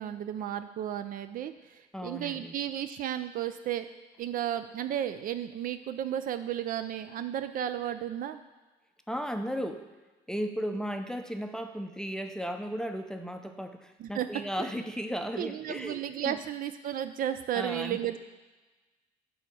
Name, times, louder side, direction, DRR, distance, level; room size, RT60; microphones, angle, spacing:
voice 1, 0.0-3.9 4.2-8.4 14.0-14.3 14.6-14.7 15.4-18.2, right 10 dB, 55° right, 10 dB, 0.4 m, -33 dB
voice 2, 1.9-2.5 9.1-9.9 10.3-16.4 17.5-18.0, equal, 5° left, 6 dB, 0.5 m, -35 dB
9.3 x 3.5 x 6.1 m, 1.2 s
cardioid pair, 110°, 17 cm